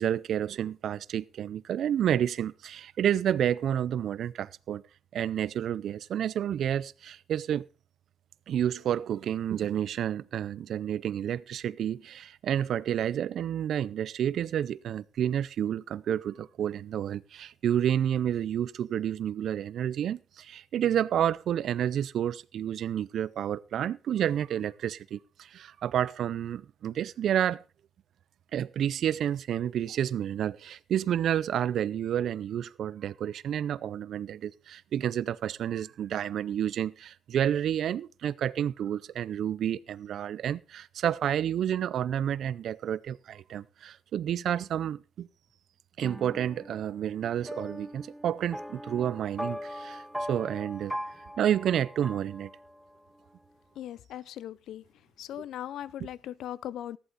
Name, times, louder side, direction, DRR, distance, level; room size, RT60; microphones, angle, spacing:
voice 1, 0.0-4.8 5.1-7.6 8.5-27.6 28.5-45.3 46.0-50.0 50.3-50.9 51.4-52.5 55.4-55.5, right 10 dB, 70° right, 0.5 m, -30 dB
sound 1, 46.0-53.0, equal, 5° right, 0.7 m, -40 dB
voice 2, 53.8-54.8 55.2-57.0, left 11 dB, 75° left, 0.5 m, -39 dB
14.0 x 11.0 x 4.1 m
cardioid pair, 90°, 0 cm